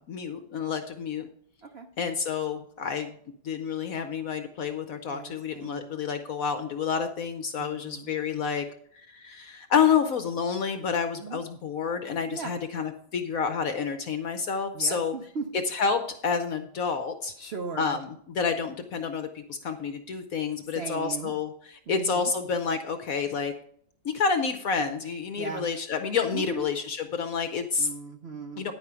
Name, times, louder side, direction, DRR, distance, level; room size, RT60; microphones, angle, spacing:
voice 1, 0.1-1.3 2.0-3.2 3.4-8.6 9.2-15.1 15.7-17.3 17.8-23.5 24.0-27.9 28.6-28.7, left 6 dB, 65° left, 8 dB, 0.9 m, -29 dB
voice 2, 5.1-6.0 7.6-8.1 11.2-11.4 12.3-12.6 14.7-15.5 17.4-18.0 20.7-21.4 21.9-22.3 25.4-25.7 26.3-26.7 27.8-28.7, right 4 dB, 70° right, 5 dB, 0.6 m, -38 dB
10.5 x 4.8 x 6.7 m, 0.62 s
omnidirectional pair, 2.1 m